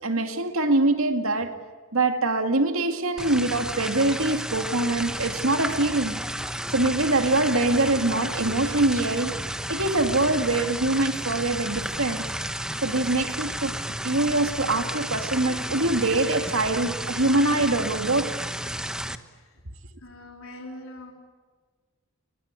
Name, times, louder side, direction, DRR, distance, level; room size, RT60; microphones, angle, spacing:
voice 1, 0.0-1.6 1.9-6.2 6.7-9.4 9.7-12.3 12.8-18.3, right 2 dB, 80° right, 2.4 m, -24 dB
sound 1, 3.2-19.2, right 1 dB, 5° right, 1.0 m, -32 dB
voice 2, 19.3-19.6 20.0-21.1, left 1 dB, 85° left, 4.1 m, -43 dB
30.0 x 24.0 x 8.3 m
head